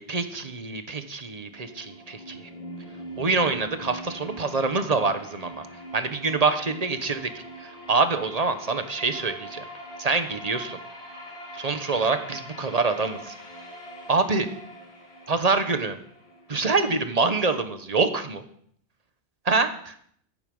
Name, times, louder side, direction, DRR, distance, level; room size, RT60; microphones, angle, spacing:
voice 1, 0.0-2.4 3.2-5.5 5.9-7.2 7.9-9.7 10.0-10.8 11.5-13.3 14.1-14.5 15.3-16.0 16.5-18.4 19.5-19.9, right 4 dB, 35° right, 9 dB, 1.1 m, -25 dB
sound 1, 1.4-17.3, equal, 65° left, 2.8 m, -42 dB
15.0 x 8.1 x 5.4 m, 0.64 s
omnidirectional pair, 1.2 m